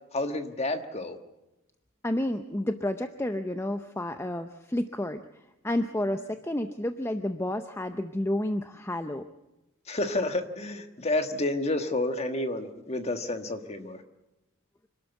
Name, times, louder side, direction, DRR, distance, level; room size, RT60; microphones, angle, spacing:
voice 1, 0.1-1.2 9.9-14.0, left 2 dB, 30° left, 7 dB, 1.5 m, -30 dB
voice 2, 2.0-5.2 5.6-9.2, left 1 dB, 10° left, 8 dB, 0.6 m, -30 dB
26.0 x 12.5 x 8.1 m, 0.97 s
head